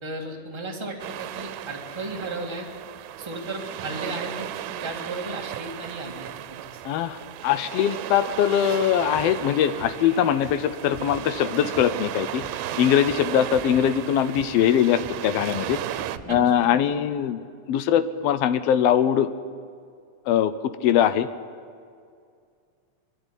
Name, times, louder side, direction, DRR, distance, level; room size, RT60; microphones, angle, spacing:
voice 1, 0.0-2.7 3.2-6.8 16.3-16.4, right 2 dB, 10° right, 0 dB, 1.7 m, -35 dB
sound 1, 1.0-16.2, right 13 dB, 90° right, 2.2 m, -35 dB
voice 2, 6.8-7.2 7.4-15.8 16.3-19.3 20.3-20.5 20.8-21.3, left 9 dB, 85° left, 13 dB, 1.4 m, -22 dB
sound 2, 8.9-16.8, equal, 30° right, 3.8 m, -43 dB
23.0 x 11.5 x 10.0 m, 2.3 s
omnidirectional pair, 3.5 m